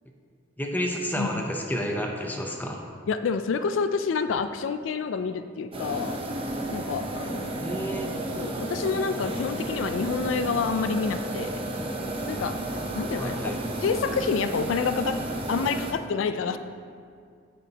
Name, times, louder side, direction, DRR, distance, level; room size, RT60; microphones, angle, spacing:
voice 1, 0.6-2.8 7.6-8.1 13.2-13.6, equal, 10° left, 1 dB, 0.7 m, -30 dB
voice 2, 3.1-6.2 6.7-7.5 8.4-11.6 12.3-12.6 12.9-13.4 13.8-15.2 15.5-16.6, left 5 dB, 90° left, 10 dB, 0.4 m, -28 dB
sound 1, 5.7-15.9, right 1 dB, 30° right, 0.8 m, -32 dB
9.3 x 9.2 x 2.9 m, 2.2 s
head